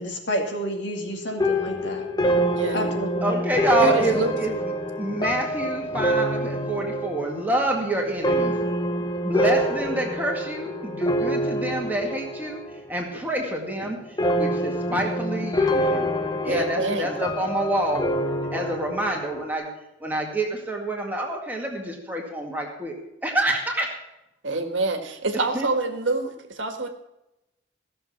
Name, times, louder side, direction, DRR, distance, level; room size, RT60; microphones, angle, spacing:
voice 1, 0.0-2.0 2.7-3.4, equal, 70° left, 2 dB, 2.5 m, -30 dB
sound 1, 1.4-12.9 13.1-13.7 14.2-19.5, equal, 20° left, 0.7 m, -26 dB
voice 2, 2.5-2.9 3.8-4.3 16.4-17.1 24.4-26.9, right 2 dB, 85° right, 6 dB, 1.6 m, -26 dB
voice 3, 3.2-4.7 5.0-8.5 9.2-12.6 12.9-16.1 16.4-18.0 18.5-19.7 20.0-22.9 23.2-23.9 25.3-25.7, right 1 dB, 10° right, 0 dB, 2.1 m, -27 dB
16.0 x 6.9 x 7.2 m, 0.91 s
head